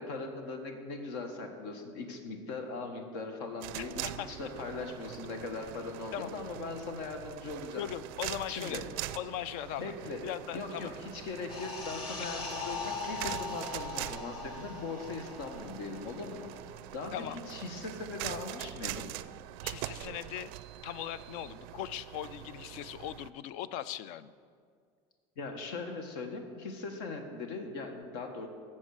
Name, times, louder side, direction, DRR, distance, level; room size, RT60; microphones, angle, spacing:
voice 1, 0.0-7.8 8.5-8.8 9.8-10.2 10.5-16.5 16.9-19.1 25.4-28.5, left 3 dB, 85° left, 5 dB, 1.5 m, -40 dB
sound 1, 3.6-23.3, right 15 dB, 85° right, 0.4 m, -43 dB
voice 2, 7.8-8.8 9.1-9.9 10.2-10.9 17.1-17.4 19.6-20.5 20.8-24.3, left 11 dB, 65° left, 16 dB, 0.5 m, -39 dB
sound 2, 11.5-16.6 16.8-17.0, left 4 dB, 40° left, 2.2 m, -40 dB
12.5 x 7.4 x 6.5 m, 2.1 s
cardioid pair, 150°, 13 cm